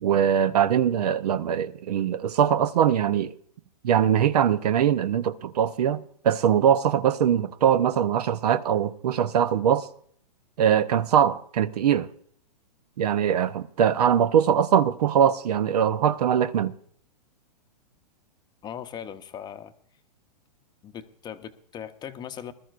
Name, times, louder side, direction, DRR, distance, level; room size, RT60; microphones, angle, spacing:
voice 1, 0.0-3.3 3.8-9.9 10.6-12.1 13.0-16.7, right 9 dB, 70° right, 0.8 m, -22 dB
voice 2, 18.6-19.7 20.8-22.5, left 9 dB, 20° left, 0.7 m, -39 dB
20.0 x 13.5 x 2.5 m
hypercardioid pair, 130°, 21 cm